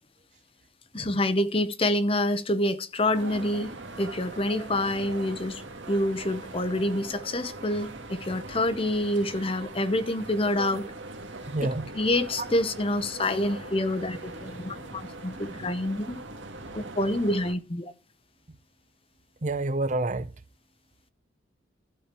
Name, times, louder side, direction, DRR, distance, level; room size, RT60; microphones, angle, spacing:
voice 1, 0.9-10.8 11.9-16.2 16.7-17.9, left 1 dB, 30° left, 0.8 m, -27 dB
sound 1, 3.1-17.5, right 2 dB, 80° right, 1.8 m, -41 dB
voice 2, 11.5-11.9 19.4-20.3, right 2 dB, 40° right, 0.6 m, -28 dB
12.5 x 4.5 x 6.8 m
head